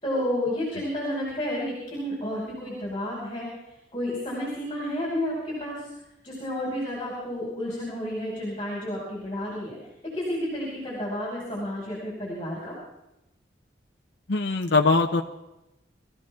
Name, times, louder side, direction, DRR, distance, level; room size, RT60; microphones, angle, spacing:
voice 1, 0.0-3.5 3.9-5.9 6.2-9.8 10.0-12.8, left 1 dB, 25° left, -5 dB, 5.3 m, -31 dB
voice 2, 14.3-15.2, left 3 dB, 65° left, 3 dB, 0.9 m, -21 dB
23.0 x 14.5 x 3.7 m, 0.91 s
head